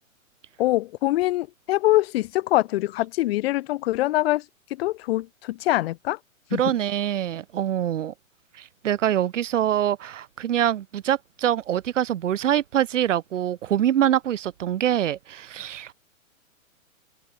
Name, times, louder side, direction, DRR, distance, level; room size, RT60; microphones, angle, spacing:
voice 1, 0.6-4.4 4.7-6.2 6.5-6.6, left 16 dB, 45° left, 5.1 m, -24 dB
voice 2, 6.5-8.1 8.5-15.9, right 11 dB, 60° right, 4.6 m, -24 dB
hypercardioid pair, 140°, 42 cm